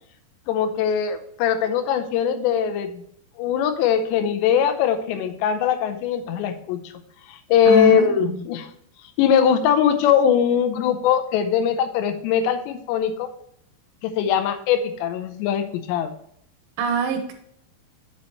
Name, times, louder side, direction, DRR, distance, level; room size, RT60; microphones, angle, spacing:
voice 1, 0.5-3.0 3.4-6.8 7.3-8.7 9.2-13.3 14.0-16.1, left 8 dB, 80° left, 9 dB, 2.8 m, -21 dB
voice 2, 7.7-8.4 16.8-17.3, right 2 dB, 90° right, 5 dB, 3.6 m, -24 dB
7.6 x 7.4 x 3.0 m, 0.69 s
omnidirectional pair, 5.4 m